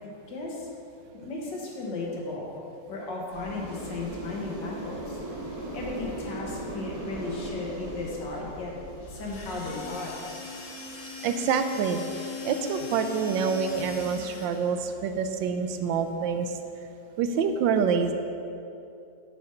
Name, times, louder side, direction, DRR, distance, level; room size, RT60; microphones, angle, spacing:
voice 1, 0.0-0.7 1.1-2.5 2.9-5.2 5.7-8.7 9.1-10.2, left 3 dB, 75° left, -2 dB, 2.0 m, -35 dB
sound 1, 3.3-9.7, right 1 dB, 55° right, 1.8 m, -38 dB
sound 2, 9.0-14.9, left 7 dB, 60° left, 1.4 m, -39 dB
voice 2, 11.2-12.0 12.4-16.5 17.2-18.1, right 6 dB, 90° right, 8 dB, 1.3 m, -26 dB
6.4 x 6.2 x 5.7 m, 2.7 s
omnidirectional pair, 2.0 m